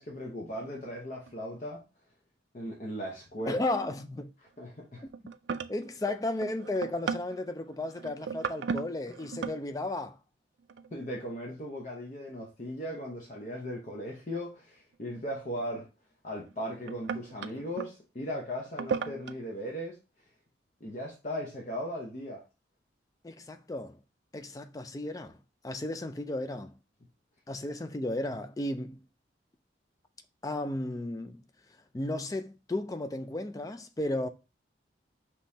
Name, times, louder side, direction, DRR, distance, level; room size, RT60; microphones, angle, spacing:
voice 1, 0.0-1.8 2.5-3.6 4.6-5.0 10.9-15.9 16.2-20.0 20.8-22.4, equal, 40° left, 0.8 m, -38 dB
sound 1, 1.3-1.4 3.4-3.9 4.2-4.5 5.0-9.6 10.7-11.2 13.2-13.3 15.6-15.7 16.5-17.9 18.6-19.4, right 6 dB, 70° right, 0.3 m, -37 dB
voice 2, 3.5-4.3 5.7-10.2 23.2-24.0 24.3-25.4 25.6-26.8 27.5-29.0 30.4-31.4 31.9-34.3, left 2 dB, 20° left, 0.3 m, -34 dB
5.3 x 3.0 x 2.7 m
head